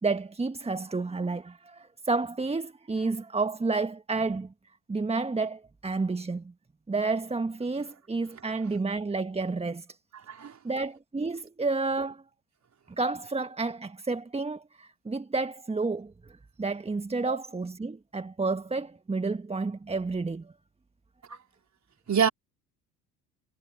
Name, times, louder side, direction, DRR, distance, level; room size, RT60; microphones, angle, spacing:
voice 1, 0.0-4.5 4.9-6.5 6.9-9.9 10.6-12.2 13.0-20.5, right 3 dB, 10° right, 1.3 m, -30 dB
voice 2, 10.3-10.6 17.3-17.4 21.3-21.4 22.1-22.3, right 7 dB, 35° right, 4.1 m, -26 dB
hypercardioid pair, 65°, 49 cm